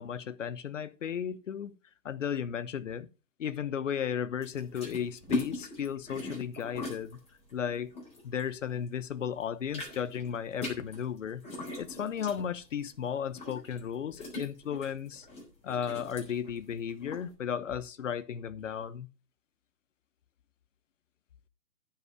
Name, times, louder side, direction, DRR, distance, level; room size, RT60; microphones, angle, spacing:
voice 1, 0.0-1.7 2.0-3.1 3.4-7.2 7.5-7.9 8.2-11.4 11.8-15.3 15.6-19.1, left 8 dB, 50° left, 1.0 m, -35 dB
sound 1, 4.4-8.9 9.3-17.3, left 2 dB, 15° left, 3.9 m, -41 dB
14.5 x 5.8 x 5.1 m
figure-of-eight pair, 145°, 49 cm